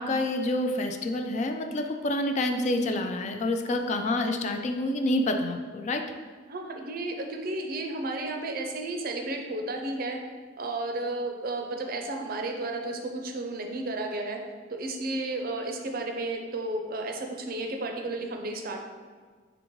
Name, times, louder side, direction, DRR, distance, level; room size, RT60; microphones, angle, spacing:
voice 1, 0.0-6.0, left 1 dB, 40° left, 5 dB, 0.3 m, -28 dB
voice 2, 6.5-10.2 10.6-14.4 14.7-18.8, right 2 dB, 50° right, 3 dB, 0.5 m, -33 dB
5.0 x 3.4 x 3.0 m, 1.5 s
head